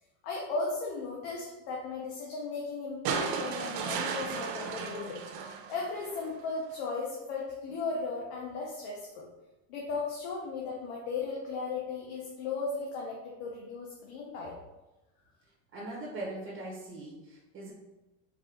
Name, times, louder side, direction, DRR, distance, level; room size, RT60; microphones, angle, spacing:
voice 1, 0.2-5.2 5.7-9.3 9.7-14.6, left 4 dB, 65° left, -3 dB, 1.0 m, -36 dB
sound 1, 3.0-6.3 7.7-7.8, right 6 dB, 60° right, 0.7 m, -35 dB
voice 2, 15.7-17.7, right 2 dB, 35° right, -3 dB, 1.2 m, -40 dB
4.6 x 2.8 x 3.9 m, 1.0 s
cardioid pair, 140°, 37 cm